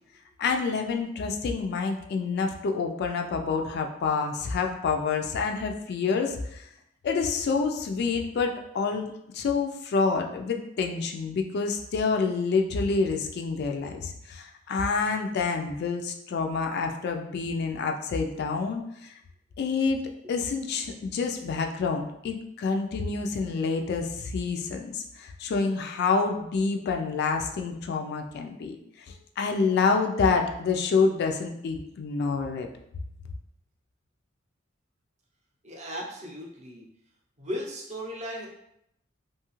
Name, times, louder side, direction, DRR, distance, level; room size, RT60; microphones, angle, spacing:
voice 1, 0.4-6.7 7.0-9.1 9.3-19.1 19.6-20.0 20.3-32.7, left 4 dB, 55° left, 4 dB, 0.3 m, -28 dB
voice 2, 35.6-36.9 37.4-38.5, equal, 35° right, -2 dB, 0.6 m, -36 dB
2.7 x 2.3 x 3.0 m, 0.77 s
head